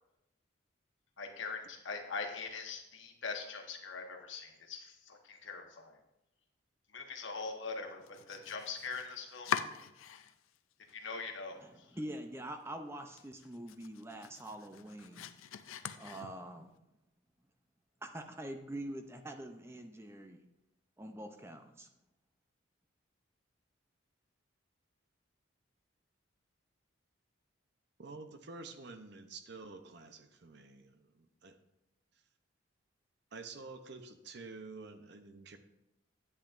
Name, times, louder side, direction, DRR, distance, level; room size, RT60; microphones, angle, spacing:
voice 1, 1.2-6.0 6.9-9.5 10.9-11.9, left 4 dB, 70° left, 3 dB, 1.2 m, -42 dB
Domestic sounds home sounds, 8.0-10.6 10.9-11.6 12.0-12.1 12.5-12.6 13.0-16.7, left 7 dB, 90° left, 0.5 m, -43 dB
voice 2, 11.6-15.3 16.0-16.8 18.0-20.4 21.0-21.9, right 1 dB, 15° right, 6 dB, 0.5 m, -45 dB
voice 3, 28.0-31.6 33.3-35.6, right 3 dB, 55° right, 8 dB, 0.7 m, -49 dB
10.5 x 8.5 x 2.6 m, 0.89 s
head